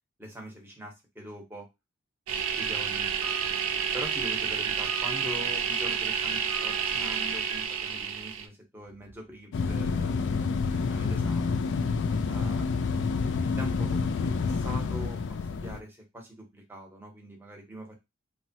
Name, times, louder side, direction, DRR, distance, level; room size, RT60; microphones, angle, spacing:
voice 1, 0.2-1.7 2.6-3.5 3.9-10.3 10.7-11.6 12.3-12.7 13.4-15.2 15.5-18.0, equal, 10° right, 1 dB, 0.7 m, -43 dB
sound 1, 2.3-8.4, right 7 dB, 75° right, 0.4 m, -30 dB
sound 2, 2.4-7.7, right 2 dB, 45° right, 0.7 m, -42 dB
sound 3, 9.5-15.8, left 4 dB, 55° left, 0.3 m, -28 dB
3.0 x 2.2 x 2.7 m, 0.22 s
head